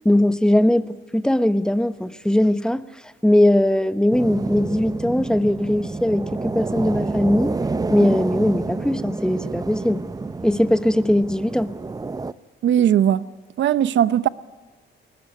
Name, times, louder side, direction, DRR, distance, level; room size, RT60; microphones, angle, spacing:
voice 1, 0.0-2.8 3.2-7.5 7.9-10.0 10.4-11.7, left 1 dB, 5° left, 1.2 m, -20 dB
sound 1, 4.1-12.3, right 3 dB, 20° right, 0.7 m, -28 dB
voice 2, 12.6-13.2 13.6-14.3, right 10 dB, 70° right, 0.9 m, -18 dB
22.0 x 20.5 x 9.7 m
cardioid pair, 90°, 20 cm